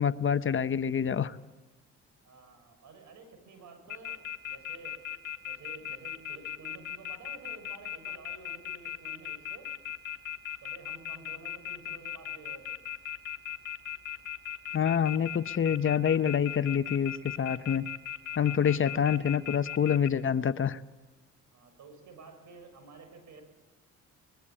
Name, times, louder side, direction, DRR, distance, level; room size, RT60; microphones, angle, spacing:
voice 1, 0.0-1.4 14.7-17.9 18.4-20.8, left 8 dB, 40° left, 12 dB, 0.9 m, -27 dB
voice 2, 2.2-5.0 5.4-9.7 10.6-12.8 18.3-19.1 21.5-23.4, right 4 dB, 70° right, 8 dB, 6.9 m, -51 dB
sound 1, 3.9-20.1, left 10 dB, 70° left, 2.2 m, -37 dB
23.5 x 21.0 x 9.0 m, 1.2 s
cardioid pair, 90°, 30 cm